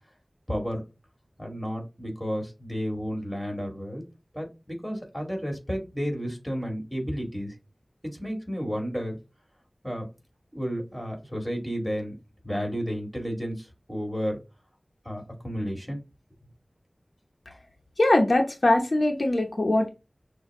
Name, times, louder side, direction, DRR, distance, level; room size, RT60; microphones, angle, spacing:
voice 1, 0.5-0.8 1.4-4.0 4.3-7.5 8.1-9.2 9.8-10.1 10.5-12.2 12.4-14.4 15.1-16.0, equal, ahead, 1 dB, 2.2 m, -32 dB
voice 2, 18.0-19.9, left 1 dB, 60° left, 2 dB, 0.8 m, -22 dB
6.3 x 2.3 x 3.6 m, 0.26 s
wide cardioid pair, 60°, 0 cm